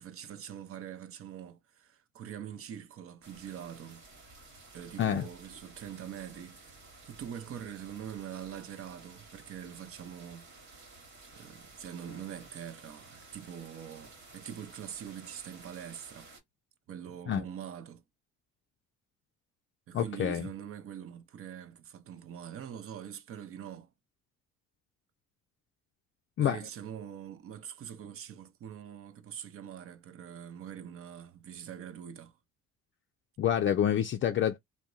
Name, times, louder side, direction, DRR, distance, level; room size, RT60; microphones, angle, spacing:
voice 1, 0.0-4.0 4.7-6.7 7.0-10.5 11.3-16.3 16.9-18.0 19.9-23.9 26.4-32.4, right 9 dB, 50° right, 0.6 m, -44 dB
sound 1, 3.2-16.4, right 3 dB, 70° right, 1.2 m, -54 dB
voice 2, 19.9-20.5 26.4-26.6 33.4-34.6, left 10 dB, 40° left, 0.4 m, -27 dB
2.7 x 2.1 x 2.3 m
cardioid pair, 85°, 30 cm